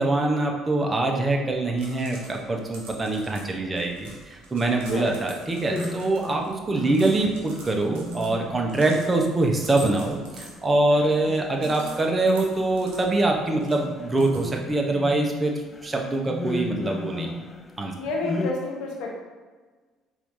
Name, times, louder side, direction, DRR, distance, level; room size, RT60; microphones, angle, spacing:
voice 1, 0.0-15.5 15.8-17.3 17.8-17.9, right 2 dB, 25° right, 1 dB, 0.8 m, -24 dB
sound 1, 1.5-14.8, right 2 dB, 85° right, 0.9 m, -47 dB
sound 2, 5.6-17.9 18.2-18.5, left 2 dB, 25° left, 0.4 m, -36 dB
voice 2, 18.0-19.1, left 3 dB, 75° left, -1 dB, 0.8 m, -29 dB
4.4 x 2.7 x 3.7 m, 1.4 s
supercardioid pair, 70°, 0 cm